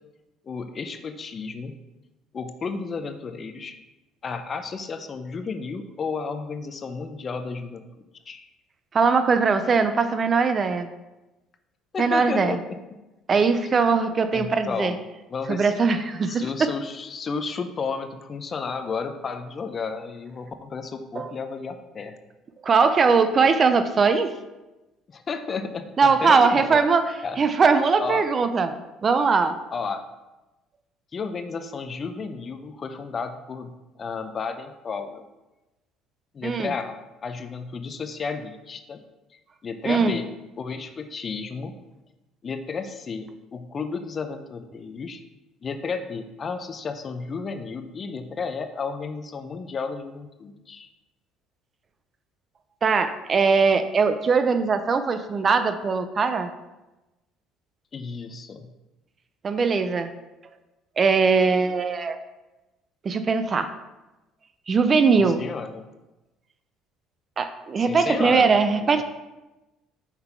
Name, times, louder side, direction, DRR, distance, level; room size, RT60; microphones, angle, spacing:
voice 1, 0.4-1.7 2.3-3.7 4.2-7.8 8.3-8.4 11.9-12.6 14.3-15.0 15.3-15.7 16.3-22.1 25.1-26.8 27.2-27.4 28.0-28.2 29.7-30.1 31.1-33.7 34.0-35.2 36.3-39.0 39.6-40.3 40.6-41.7 42.4-45.2 45.6-50.9 57.9-58.7 65.2-65.9 67.8-68.5 68.8-69.0, left 5 dB, 35° left, 8 dB, 0.5 m, -32 dB
voice 2, 8.9-10.9 12.0-12.6 13.3-14.9 15.5-16.7 21.2-21.3 22.6-24.3 26.0-27.0 27.4-29.6 36.4-36.7 39.8-40.2 52.8-56.5 59.4-60.1 61.0-62.2 63.0-63.7 64.7-65.4 67.4-69.0, right 5 dB, 35° right, 10 dB, 0.4 m, -21 dB
5.6 x 3.9 x 4.5 m, 1.0 s
cardioid pair, 105°, 0 cm